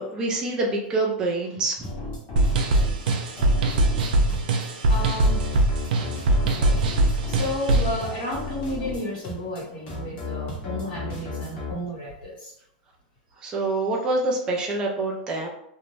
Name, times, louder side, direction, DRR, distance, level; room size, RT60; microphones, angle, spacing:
voice 1, 0.0-1.9 13.4-15.5, right 2 dB, 15° right, -1 dB, 0.4 m, -26 dB
sound 1, 1.8-11.7, left 2 dB, 25° left, 0.8 m, -35 dB
sound 2, 2.4-8.0, right 2 dB, 75° right, 0.4 m, -21 dB
voice 2, 4.9-5.4 6.4-12.5, left 1 dB, 70° left, -4 dB, 1.2 m, -32 dB
2.6 x 2.1 x 3.0 m, 0.75 s
supercardioid pair, 165°, 5 cm